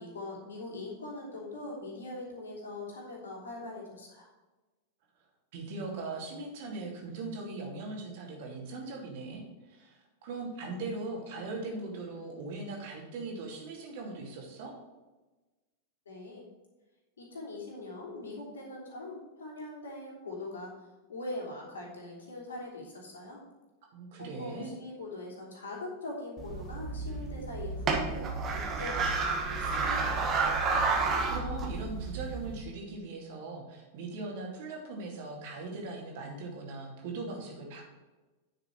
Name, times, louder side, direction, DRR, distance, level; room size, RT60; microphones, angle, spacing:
voice 1, 0.0-4.3 16.0-16.4 17.2-23.4 24.2-30.3, left 2 dB, 70° left, -2 dB, 3.1 m, -42 dB
voice 2, 5.5-14.7 23.9-24.7 30.8-37.8, right 3 dB, 50° right, 0 dB, 2.6 m, -40 dB
sound 1, 26.4-32.6, right 4 dB, 30° right, 1.7 m, -31 dB
9.9 x 6.8 x 4.7 m, 1.2 s
figure-of-eight pair, 90°, 0 cm